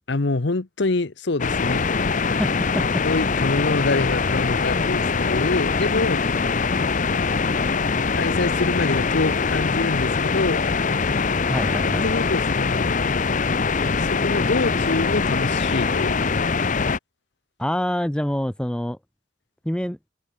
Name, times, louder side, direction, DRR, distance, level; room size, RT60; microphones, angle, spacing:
voice 1, 0.1-1.9 3.0-6.2 7.1-7.4 8.1-10.6 12.0-13.0 13.9-16.2, left 3 dB, 60° left, 0.9 m, -25 dB
sound 1, 1.4-17.0, left 4 dB, 40° left, 0.7 m, -23 dB
voice 2, 2.2-3.0 11.4-12.1 17.6-19.0 19.6-20.0, equal, 5° left, 0.7 m, -26 dB
head